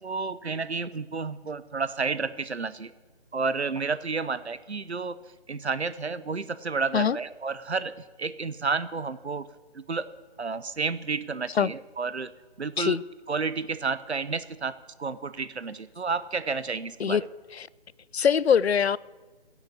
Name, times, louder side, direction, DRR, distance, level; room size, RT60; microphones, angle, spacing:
voice 1, 0.0-2.9 3.3-5.2 5.5-7.9 8.2-9.4 9.7-10.1 10.4-12.3 12.6-13.0 13.3-17.2, right 4 dB, 80° right, 0.8 m, -31 dB
voice 2, 18.1-19.0, left 7 dB, 75° left, 0.5 m, -23 dB
16.5 x 7.1 x 8.3 m
figure-of-eight pair, 150°, 32 cm